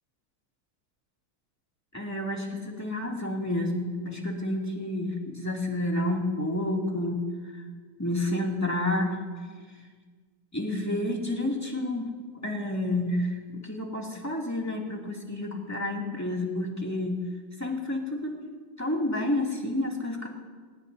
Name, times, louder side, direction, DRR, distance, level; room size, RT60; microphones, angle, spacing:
voice 1, 1.9-7.3 7.5-7.6 8.0-9.2 10.5-12.1 12.4-17.2 17.6-18.4 18.8-20.3, left 1 dB, 10° left, -2 dB, 2.5 m, -30 dB
26.0 x 19.5 x 2.7 m, 1.5 s
omnidirectional pair, 2.2 m